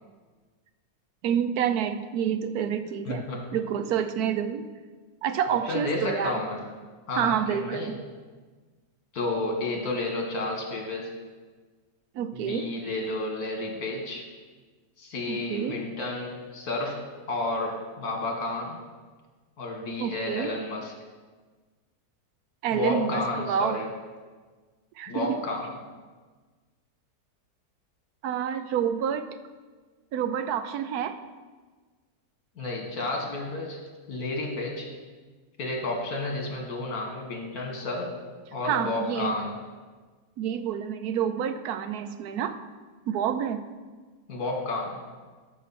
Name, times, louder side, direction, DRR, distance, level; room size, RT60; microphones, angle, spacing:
voice 1, 1.2-3.2 3.5-4.6 5.2-6.4 7.1-8.0 12.1-12.7 15.3-15.8 20.0-20.5 22.6-23.8 25.0-25.4 28.2-29.3 30.1-31.2 38.7-39.3 40.4-42.6 43.1-43.6, right 8 dB, 80° right, 11 dB, 1.1 m, -28 dB
voice 2, 3.1-3.6 5.5-6.6 7.1-8.0 9.1-11.1 12.3-14.2 15.0-18.8 19.6-20.9 22.7-23.9 25.1-25.7 32.6-33.8 34.1-34.9 35.6-38.1 38.5-39.5 44.3-45.0, left 2 dB, 75° left, 1 dB, 2.1 m, -31 dB
13.5 x 6.1 x 4.3 m, 1.4 s
omnidirectional pair, 1.6 m